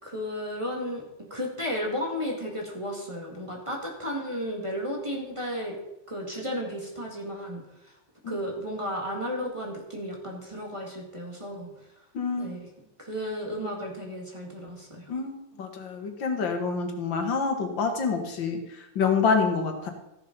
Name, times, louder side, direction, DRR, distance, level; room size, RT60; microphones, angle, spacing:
voice 1, 0.0-5.8 6.1-7.9 8.3-11.7 12.4-12.7 13.0-15.1, equal, 15° right, 0 dB, 2.1 m, -33 dB
voice 2, 12.1-12.6 15.1-18.6 19.0-19.9, left 5 dB, 90° left, 5 dB, 2.3 m, -27 dB
14.5 x 6.9 x 5.3 m, 0.90 s
omnidirectional pair, 2.0 m